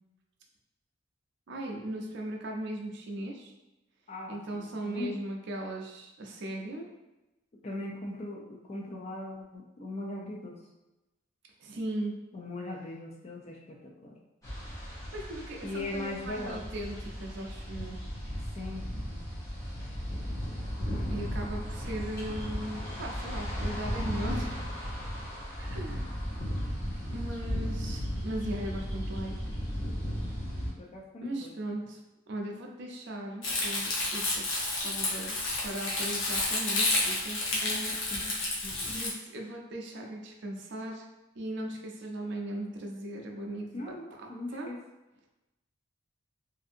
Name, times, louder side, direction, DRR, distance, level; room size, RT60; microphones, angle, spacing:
voice 1, 1.5-3.5 4.3-6.9 11.6-12.2 15.1-18.0 21.1-24.6 25.6-26.2 27.1-29.4 31.2-32.0 32.3-34.4 34.8-35.4 35.6-37.4 38.8-41.0 41.4-44.7, right 1 dB, 55° right, 1 dB, 0.4 m, -38 dB
voice 2, 4.1-5.1 7.6-10.6 12.3-14.2 15.6-16.6 18.5-19.2 20.1-20.6 20.9-21.0 30.8-31.6 37.6-39.0 43.7-44.8, left 2 dB, 30° left, -1 dB, 0.3 m, -40 dB
sound 1, 14.4-30.7, equal, 15° left, 0.8 m, -35 dB
Crumpling crinkling, 33.4-39.1, left 2 dB, 65° left, 0.7 m, -30 dB
2.6 x 2.5 x 2.5 m, 0.99 s
head